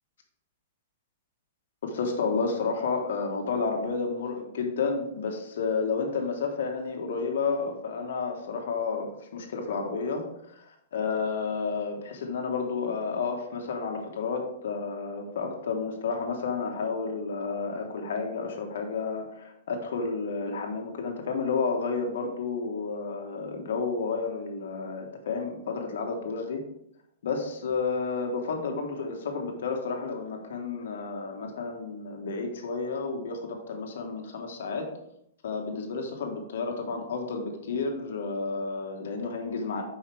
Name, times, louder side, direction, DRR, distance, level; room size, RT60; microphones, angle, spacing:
voice 1, 1.8-26.6 27.2-34.9 35.4-39.8, left 4 dB, 70° left, 3 dB, 1.6 m, -31 dB
7.7 x 5.5 x 3.5 m, 0.77 s
hypercardioid pair, 175°, 0 cm